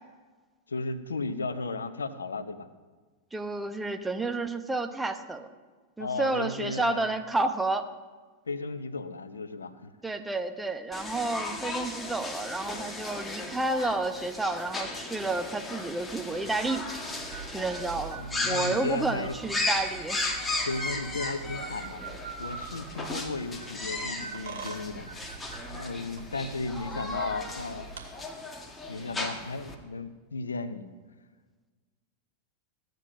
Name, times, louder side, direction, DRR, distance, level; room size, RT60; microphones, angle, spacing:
voice 1, 0.7-2.7 6.0-7.2 8.5-9.9 18.1-19.3 20.7-22.0 22.4-25.1 25.7-27.9 28.9-30.9, left 3 dB, 75° left, 11 dB, 0.8 m, -35 dB
voice 2, 3.3-5.5 6.0-7.9 10.0-16.9 17.5-20.2, right 2 dB, 10° right, 7 dB, 0.9 m, -30 dB
sound 1, 10.9-29.7, left 2 dB, 15° left, 1.8 m, -36 dB
sound 2, 16.3-28.0, right 5 dB, 60° right, 2.4 m, -44 dB
15.5 x 9.2 x 5.3 m, 1.4 s
figure-of-eight pair, 90°, 0 cm